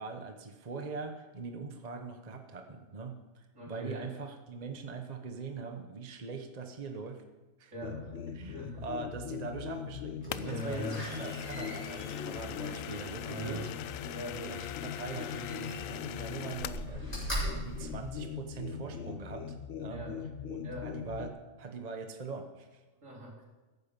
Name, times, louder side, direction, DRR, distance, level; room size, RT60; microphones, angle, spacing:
voice 1, 0.0-7.2 7.6-7.7 8.3-13.7 14.3-20.1 20.4-22.8, right 4 dB, 35° right, 5 dB, 1.0 m, -42 dB
voice 2, 3.5-4.1 7.7-8.1 8.4-8.8 10.5-11.0 13.2-13.6 14.1-14.4 19.9-20.2 20.6-20.9 23.0-23.4, equal, 70° right, -4 dB, 4.3 m, -41 dB
sound 1, 7.8-21.3, left 7 dB, 65° left, 1.1 m, -41 dB
Slam, 10.2-14.1 15.2-16.1 16.5-18.8 19.3-19.4, equal, 30° left, 5.7 m, -41 dB
sound 2, 10.3-16.9, left 11 dB, 85° left, 1.0 m, -42 dB
14.5 x 11.0 x 5.3 m, 1.2 s
omnidirectional pair, 1.4 m